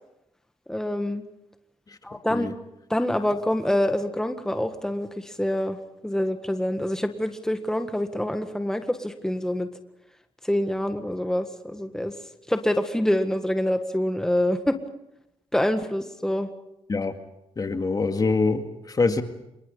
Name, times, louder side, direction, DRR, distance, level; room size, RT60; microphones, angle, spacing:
voice 1, 0.7-1.2 2.0-2.5 2.9-5.8 6.0-9.7 10.4-12.1 12.5-14.8 15.5-16.5, left 1 dB, 5° left, 7 dB, 1.7 m, -26 dB
voice 2, 17.6-19.2, left 3 dB, 35° left, 7 dB, 2.1 m, -24 dB
26.5 x 23.0 x 5.5 m, 0.86 s
supercardioid pair, 65°, 11 cm